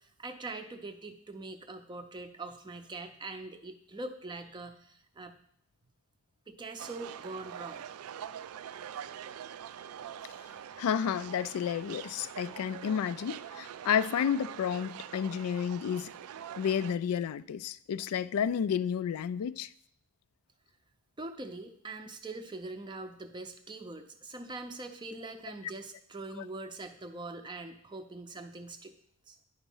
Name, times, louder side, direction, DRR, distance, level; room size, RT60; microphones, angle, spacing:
voice 1, 0.0-5.4 6.5-7.8 21.2-28.9 29.3-29.4, right 2 dB, 20° right, 0.5 m, -43 dB
sound 1, 6.8-16.9, right 9 dB, 85° right, 0.3 m, -44 dB
voice 2, 10.8-16.1 16.6-19.7, left 8 dB, 85° left, 0.3 m, -31 dB
10.0 x 4.0 x 5.4 m
head